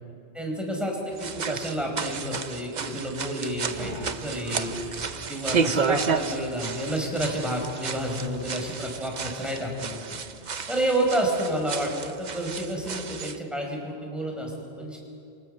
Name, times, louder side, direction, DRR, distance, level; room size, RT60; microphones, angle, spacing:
voice 1, 0.3-10.2 10.7-15.0, right 1 dB, ahead, 0 dB, 5.0 m, -30 dB
sound 1, 1.1-13.4, right 5 dB, 40° right, 0.9 m, -32 dB
sound 2, 3.5-9.1, right 1 dB, 70° right, 7.3 m, -45 dB
27.5 x 23.5 x 6.7 m, 2.5 s
omnidirectional pair, 1.2 m